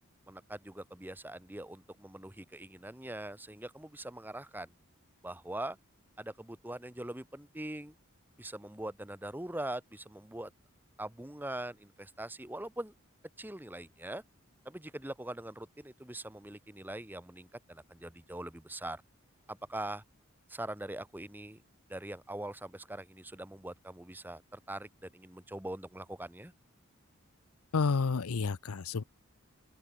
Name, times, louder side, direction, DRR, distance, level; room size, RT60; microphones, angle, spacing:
voice 1, 0.3-4.7 5.2-5.8 6.2-7.9 8.4-10.5 11.0-12.9 13.4-14.2 14.6-19.0 19.5-20.0 20.5-21.6 21.9-26.5, right 1 dB, 10° right, 0.9 m, -42 dB
voice 2, 27.7-29.0, left 4 dB, 80° left, 0.6 m, -30 dB
open air
head